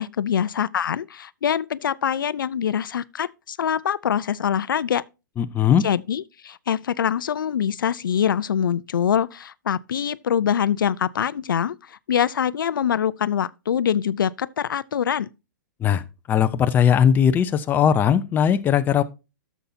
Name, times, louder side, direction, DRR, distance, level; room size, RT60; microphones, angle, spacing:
voice 1, 0.0-5.0 5.8-15.3, left 8 dB, 90° left, 0.4 m, -24 dB
voice 2, 5.4-5.8 15.8-19.0, left 8 dB, 15° left, 0.6 m, -19 dB
11.5 x 7.1 x 2.7 m
hypercardioid pair, 140°, 11 cm